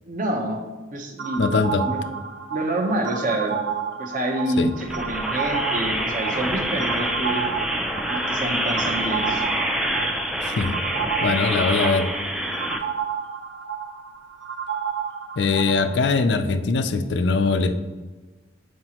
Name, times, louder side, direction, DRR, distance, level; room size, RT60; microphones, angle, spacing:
voice 1, 0.0-0.6 0.9-1.5 1.8-2.0 2.5-3.6 4.0-7.4 8.1-9.4, right 1 dB, 45° right, 2 dB, 0.8 m, -27 dB
sound 1, 1.2-16.0, right 7 dB, 85° right, 0.7 m, -31 dB
voice 2, 1.4-1.8 4.6-4.7 10.4-10.8 11.2-12.1 15.4-17.7, left 4 dB, 70° left, 10 dB, 0.4 m, -21 dB
sound 2, 4.8-12.8, equal, 5° right, 0.4 m, -26 dB
7.6 x 4.8 x 2.9 m, 1.3 s
head